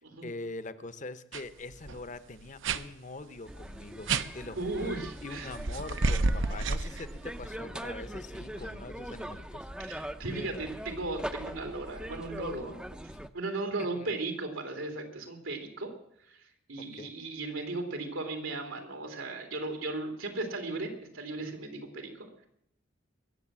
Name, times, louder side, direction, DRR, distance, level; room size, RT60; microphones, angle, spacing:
voice 1, 0.2-4.9 5.2-9.7 13.1-13.2 13.9-14.1 16.8-17.1, left 2 dB, 40° left, 13 dB, 0.8 m, -43 dB
sound 1, 1.3-1.4 1.7-2.0 2.6-2.8 4.1-4.3 5.5-7.5, right 3 dB, 70° right, 0.7 m, -29 dB
sound 2, 3.5-13.3, right 1 dB, 5° right, 0.5 m, -41 dB
voice 2, 4.6-5.5 8.5-8.7 9.8-12.7 13.3-15.9 16.3-22.5, right 2 dB, 90° right, 5 dB, 3.0 m, -36 dB
22.0 x 7.9 x 7.5 m, 0.72 s
head